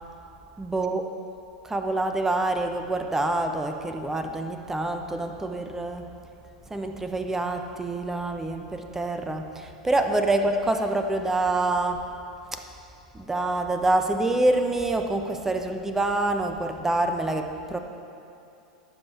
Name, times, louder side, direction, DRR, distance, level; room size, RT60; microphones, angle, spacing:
voice 1, 0.6-1.0 1.6-6.1 6.7-12.1 12.5-12.6 13.1-17.8, right 2 dB, 10° right, 5 dB, 1.0 m, -26 dB
19.5 x 7.7 x 4.5 m, 2.6 s
figure-of-eight pair, 90°, 4 cm